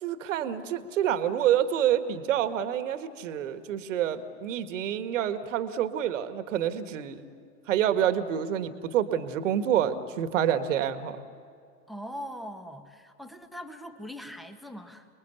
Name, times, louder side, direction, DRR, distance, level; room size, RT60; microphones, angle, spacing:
voice 1, 0.0-7.2 7.7-11.2, right 10 dB, 50° right, 11 dB, 1.7 m, -27 dB
voice 2, 11.9-15.1, equal, ahead, 8 dB, 1.3 m, -41 dB
29.5 x 21.0 x 8.3 m, 2.3 s
figure-of-eight pair, 110°, 48 cm